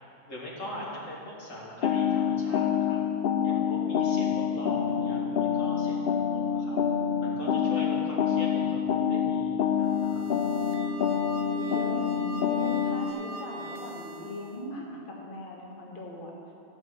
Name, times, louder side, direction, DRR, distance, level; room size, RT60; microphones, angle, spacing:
voice 1, 0.3-3.0 3.4-6.8 7.2-10.3, left 1 dB, 90° left, -5 dB, 2.4 m, -41 dB
sound 1, 1.8-13.1, left 7 dB, 60° left, 0.6 m, -27 dB
sound 2, 9.8-14.7, right 3 dB, 45° right, 0.5 m, -42 dB
voice 2, 11.5-16.3, left 1 dB, 45° left, -3 dB, 1.6 m, -39 dB
12.5 x 5.5 x 7.7 m, 2.6 s
omnidirectional pair, 1.3 m